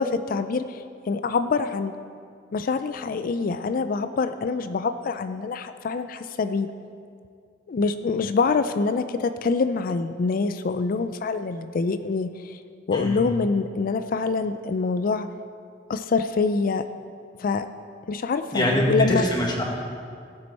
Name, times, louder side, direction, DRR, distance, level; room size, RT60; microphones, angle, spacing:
voice 1, 0.0-1.9 2.5-6.7 7.7-12.6 12.9-15.3 15.9-16.8 17.4-17.7 18.1-19.2, left 4 dB, 50° left, 10 dB, 0.4 m, -25 dB
voice 2, 18.5-19.6, equal, 25° left, -1 dB, 1.6 m, -24 dB
16.0 x 7.6 x 4.2 m, 2.3 s
head